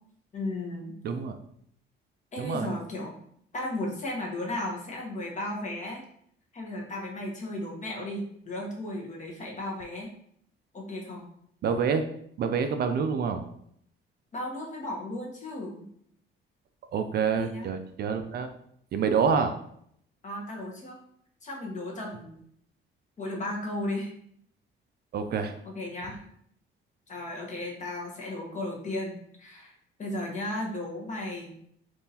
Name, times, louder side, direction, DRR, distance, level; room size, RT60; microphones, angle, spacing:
voice 1, 0.3-0.9 2.3-3.2 3.5-6.0 6.5-10.1 10.7-11.3 14.3-15.9 17.4-17.7 20.2-21.0 21.4-22.4 23.2-24.1 25.7-26.2 27.1-29.7 30.0-31.6, left 1 dB, 35° left, -1 dB, 1.0 m, -35 dB
voice 2, 1.0-1.4 2.4-2.7 11.6-12.0 12.4-13.4 16.9-18.5 18.9-19.5 25.1-25.6, right 6 dB, 50° right, 7 dB, 0.4 m, -27 dB
3.6 x 2.5 x 2.8 m, 0.68 s
cardioid pair, 115°, 21 cm